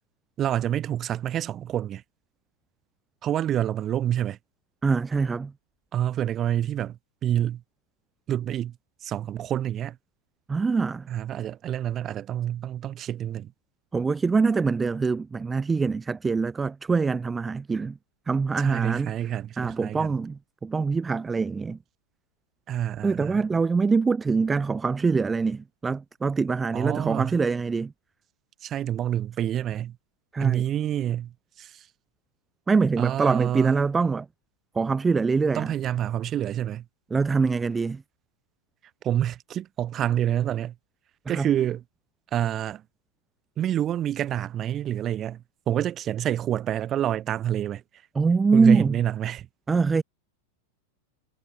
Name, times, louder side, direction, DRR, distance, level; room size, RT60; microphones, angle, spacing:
voice 1, 0.4-2.0 3.2-4.4 5.9-7.6 8.3-8.8 9.0-10.0 11.1-13.5 18.6-20.2 22.7-23.4 26.7-27.4 28.6-30.0 30.4-31.9 33.0-33.8 35.5-36.8 39.0-40.7 41.3-41.8 42.3-42.8 43.6-47.8 48.5-49.5, right 11 dB, 30° right, 4.6 m, -28 dB
voice 2, 4.8-5.5 10.5-11.1 13.9-18.0 18.3-19.1 19.6-21.8 23.0-27.9 30.3-30.6 32.7-34.3 34.7-35.7 37.1-38.0 41.3-41.5 48.1-49.0 49.7-50.0, right 4 dB, 15° right, 1.0 m, -24 dB
figure-of-eight pair, 90°, 0 cm